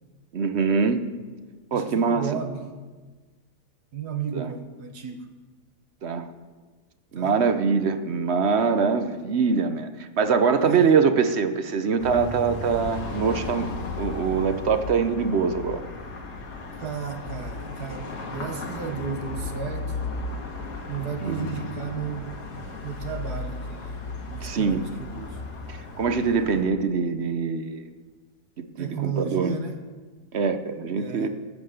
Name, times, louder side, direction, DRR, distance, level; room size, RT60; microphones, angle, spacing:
voice 1, 0.3-1.0 1.7-2.3 4.3-4.5 6.0-6.3 7.1-13.7 14.0-15.8 21.2-21.5 24.4-24.8 25.7-27.9 28.8-29.6 30.3-31.3, right 5 dB, 50° right, 10 dB, 0.9 m, -23 dB
voice 2, 1.7-2.6 3.9-5.3 7.2-7.4 10.6-11.0 16.8-20.0 20.9-22.3 22.8-24.0 24.3-25.4 28.8-29.8 31.0-31.3, right 7 dB, 80° right, 5 dB, 1.8 m, -33 dB
sound 1, 12.0-26.6, left 3 dB, 85° left, 2.2 m, -35 dB
18.5 x 7.6 x 6.6 m, 1.3 s
omnidirectional pair, 1.7 m